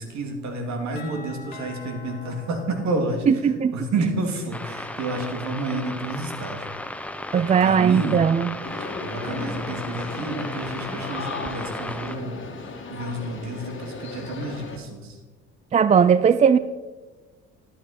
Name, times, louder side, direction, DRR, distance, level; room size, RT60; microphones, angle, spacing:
voice 1, 0.0-3.3 3.7-6.7 7.4-8.2 8.8-12.4 12.9-15.2, right 2 dB, 55° right, 4 dB, 2.4 m, -30 dB
Doorbell, 1.0-3.8, left 4 dB, 90° left, 1.8 m, -45 dB
voice 2, 3.3-3.8 7.3-8.5 15.7-16.6, right 7 dB, 20° right, 15 dB, 0.3 m, -18 dB
sound 1, 4.5-12.2, left 1 dB, 5° left, 0.8 m, -35 dB
sound 2, 8.6-14.8, left 4 dB, 35° left, 2.0 m, -36 dB
12.0 x 8.6 x 4.2 m, 1.2 s
hypercardioid pair, 65°, 33 cm